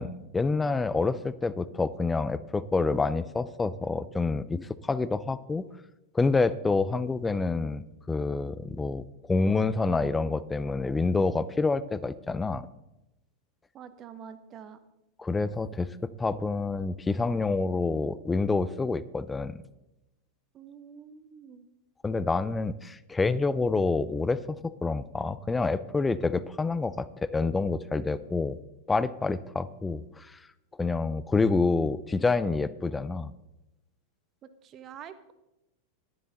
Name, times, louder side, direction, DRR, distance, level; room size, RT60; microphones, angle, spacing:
voice 1, 0.0-5.7 6.1-12.7 15.2-19.6 22.0-28.6 28.9-30.4 30.8-33.3, left 3 dB, 10° left, 17 dB, 0.5 m, -28 dB
voice 2, 13.7-14.8 20.5-21.7 34.4-35.3, right 8 dB, 30° right, 12 dB, 0.9 m, -46 dB
12.5 x 11.0 x 4.1 m, 0.93 s
figure-of-eight pair, 90°, 0 cm